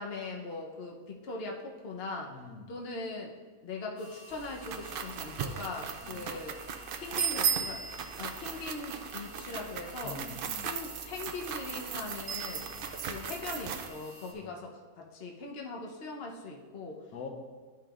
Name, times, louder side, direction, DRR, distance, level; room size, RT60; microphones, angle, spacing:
voice 1, 0.0-2.3 2.7-3.3 3.6-6.6 7.0-7.9 8.2-10.2 10.6-12.7 13.1-17.0, left 3 dB, 50° left, 0 dB, 1.0 m, -40 dB
voice 2, 2.3-2.7 6.0-6.3 10.0-10.7 12.7-13.0 14.3-14.5 17.1-17.3, left 4 dB, 80° left, 3 dB, 1.3 m, -45 dB
sound 1, 4.0-14.3, equal, 15° left, 1.8 m, -53 dB
sound 2, 4.3-13.9, right 7 dB, 85° right, 0.4 m, -36 dB
12.0 x 5.9 x 2.4 m, 1.4 s
omnidirectional pair, 1.5 m